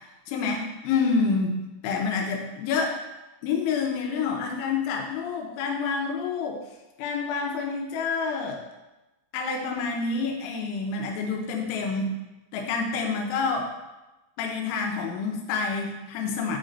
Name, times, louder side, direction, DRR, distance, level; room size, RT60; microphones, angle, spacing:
voice 1, 0.3-1.6 1.8-3.0 3.4-6.6 7.0-8.6 9.3-12.1 12.5-13.7 14.4-16.6, left 5 dB, 80° left, 1 dB, 3.1 m, -28 dB
10.0 x 4.1 x 2.6 m, 1.0 s
omnidirectional pair, 5.9 m